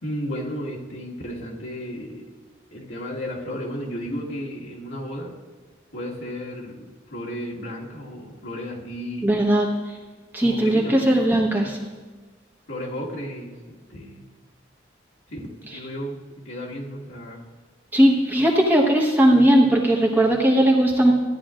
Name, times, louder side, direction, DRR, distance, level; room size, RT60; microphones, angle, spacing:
voice 1, 0.0-2.3 2.7-5.3 5.9-9.3 10.4-11.1 12.7-14.2 15.3-17.4, equal, 85° left, -4 dB, 1.9 m, -33 dB
voice 2, 9.2-9.7 10.3-11.8 17.9-21.1, right 1 dB, 10° right, -2 dB, 1.2 m, -18 dB
14.5 x 10.0 x 2.5 m, 1.3 s
head